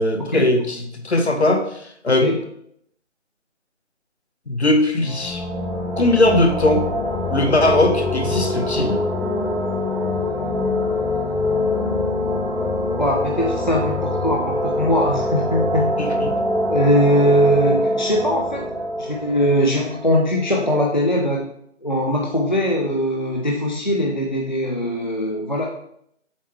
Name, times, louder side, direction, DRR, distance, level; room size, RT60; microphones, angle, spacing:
voice 1, 0.0-1.7 2.0-2.3 4.5-5.4 6.0-6.9 7.3-9.0 16.0-16.3, left 1 dB, 60° left, 6 dB, 1.0 m, -19 dB
sound 1, 5.0-20.6, left 1 dB, ahead, 0.7 m, -24 dB
voice 2, 13.0-15.9 16.7-18.6 19.0-21.4 21.8-25.7, equal, 40° left, -1 dB, 0.6 m, -21 dB
7.1 x 3.0 x 4.5 m, 0.70 s
figure-of-eight pair, 170°, 38 cm